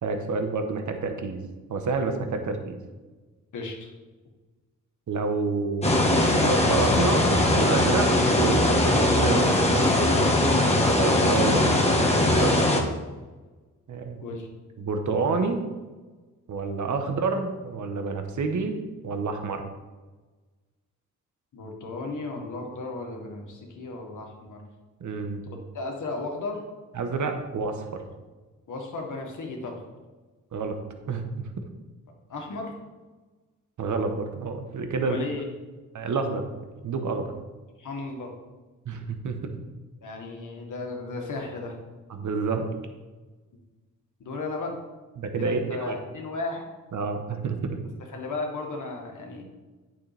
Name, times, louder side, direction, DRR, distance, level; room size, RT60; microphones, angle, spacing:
voice 1, 0.0-1.4 1.7-2.8 5.1-7.2 7.5-9.7 11.0-12.6 13.9-14.2 14.8-15.6 16.5-19.6 25.0-25.4 26.9-27.8 30.5-30.8 31.1-31.6 33.8-35.2 35.9-36.5 36.8-37.3 38.8-39.5 42.1-42.7 45.2-46.0 46.9-47.8, right 4 dB, 60° right, 6 dB, 1.1 m, -28 dB
voice 2, 3.5-3.9 11.5-11.7 14.2-14.5 17.0-17.1 21.5-24.6 25.7-26.6 28.7-29.7 32.3-32.7 35.0-35.5 37.8-38.3 40.0-41.8 44.2-44.8 45.4-46.6 48.1-49.4, left 3 dB, 65° left, 1 dB, 1.8 m, -35 dB
sound 1, 5.8-12.8, left 1 dB, 20° left, 1.5 m, -21 dB
9.0 x 6.6 x 3.4 m, 1.3 s
cardioid pair, 70°, 33 cm